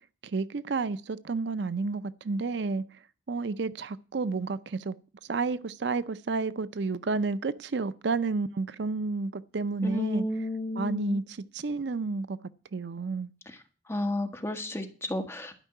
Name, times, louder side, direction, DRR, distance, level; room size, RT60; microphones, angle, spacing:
voice 1, 0.2-2.8 3.3-5.0 5.3-10.2 10.8-12.4 12.7-13.3, right 4 dB, 70° right, 0.5 m, -31 dB
voice 2, 9.8-11.2 13.5-13.6 13.9-15.5, left 1 dB, 15° left, 1.5 m, -31 dB
12.0 x 5.5 x 9.1 m
head